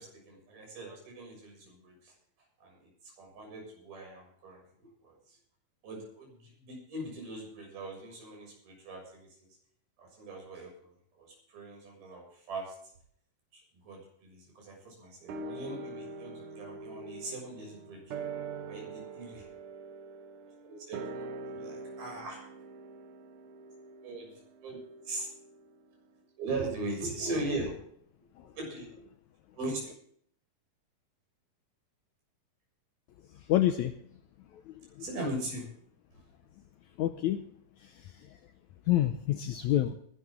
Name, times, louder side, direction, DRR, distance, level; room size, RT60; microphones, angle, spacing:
voice 1, 0.0-2.1 2.6-4.6 5.0-5.2 5.8-9.6 10.0-11.3 11.5-12.7 13.5-18.0 18.7-19.5 20.6-22.4 24.0-24.3 24.6-24.8 25.0-25.3 26.4-27.8 28.5-29.0 29.5-29.9 35.0-35.7, right 2 dB, 85° right, 0 dB, 8.6 m, -40 dB
sound 1, 15.3-25.9 26.2-26.3, right 3 dB, 65° right, 2.6 m, -44 dB
voice 2, 33.5-34.0 37.0-37.5 38.9-40.0, left 13 dB, 80° left, 8 dB, 1.7 m, -27 dB
21.0 x 12.0 x 3.7 m, 0.63 s
omnidirectional pair, 4.2 m